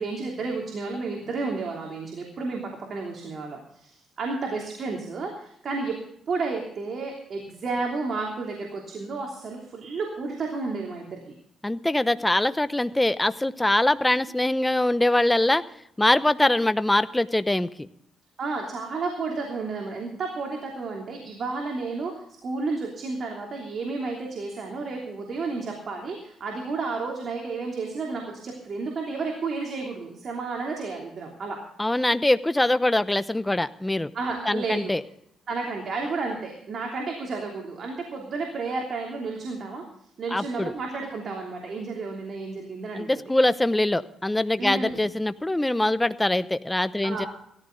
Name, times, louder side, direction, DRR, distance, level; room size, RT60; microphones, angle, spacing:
voice 1, 0.0-5.9 6.3-11.2 18.4-31.6 34.1-34.9 35.5-39.8 40.2-43.1 44.6-45.0 47.0-47.3, right 3 dB, 50° right, 1 dB, 3.1 m, -32 dB
voice 2, 11.6-15.6 16.0-17.7 31.8-34.1 34.5-35.0 40.3-40.7 42.9-47.3, left 1 dB, 10° left, 13 dB, 0.8 m, -23 dB
17.5 x 14.0 x 3.9 m, 0.72 s
cardioid pair, 90°, 0 cm